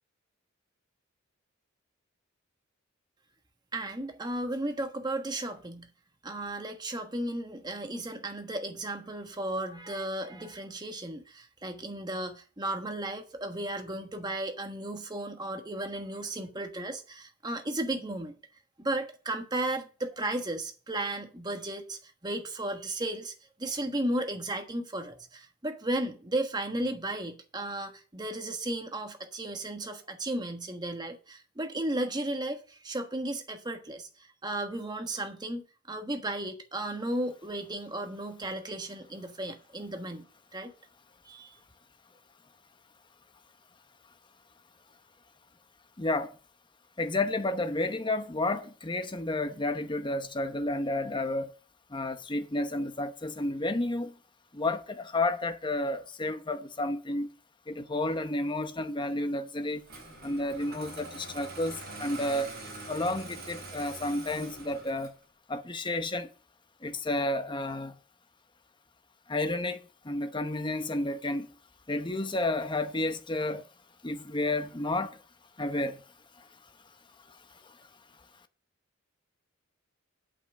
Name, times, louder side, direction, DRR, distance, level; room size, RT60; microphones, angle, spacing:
voice 1, 3.7-5.9 6.2-18.3 18.8-23.3 23.6-40.2 40.5-40.7 41.2-41.5, right 1 dB, 20° right, 1.3 m, -34 dB
voice 2, 46.0-46.4 47.0-51.5 51.9-54.2 54.5-57.3 57.7-59.9 60.2-62.5 62.9-65.1 65.5-66.3 66.8-68.0 69.3-71.5 71.9-73.7 74.0-75.2 75.6-76.0 76.4-76.5 77.3-77.8, left 2 dB, 20° left, 0.8 m, -31 dB
Engine starting, 59.8-65.2, right 2 dB, 50° right, 4.4 m, -44 dB
8.3 x 5.8 x 7.1 m
head